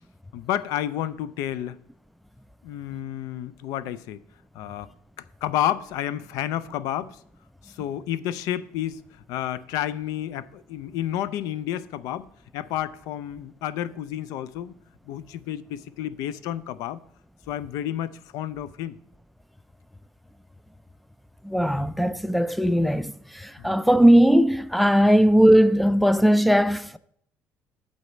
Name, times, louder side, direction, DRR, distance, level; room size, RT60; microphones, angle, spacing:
voice 1, 0.3-1.8 2.6-4.2 4.5-4.9 5.4-7.2 7.6-14.8 15.1-17.0 17.5-19.0 23.6-23.7 25.1-25.2, left 11 dB, 85° left, 0.4 m, -30 dB
voice 2, 21.4-27.0, equal, ahead, 0.3 m, -19 dB
8.1 x 4.1 x 6.8 m
cardioid pair, 110°, 6 cm